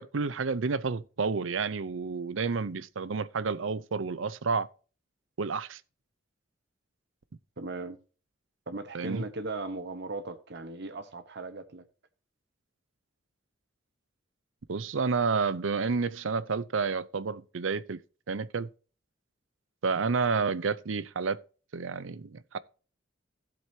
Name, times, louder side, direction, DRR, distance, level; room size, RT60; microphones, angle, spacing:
voice 1, 0.0-4.7 5.4-5.8 8.9-9.2 14.7-18.0 18.3-18.7 19.8-21.4 21.7-22.6, right 4 dB, 90° right, 0.6 m, -30 dB
voice 2, 7.6-8.0 8.7-11.8, right 2 dB, 60° right, 1.0 m, -37 dB
16.0 x 7.7 x 2.8 m
head